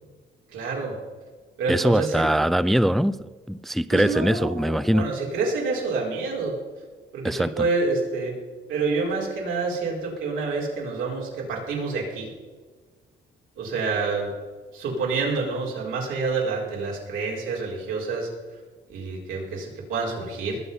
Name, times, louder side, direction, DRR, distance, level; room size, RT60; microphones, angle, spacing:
voice 1, 0.5-1.0 1.6-2.2 3.9-6.6 7.1-8.4 8.7-12.3 13.6-14.3 14.7-18.3 18.9-20.6, right 4 dB, 90° right, 4.8 m, -28 dB
voice 2, 1.7-5.1 7.2-7.7, equal, ahead, 0.4 m, -22 dB
20.0 x 8.1 x 5.6 m
cardioid pair, 90°, 20 cm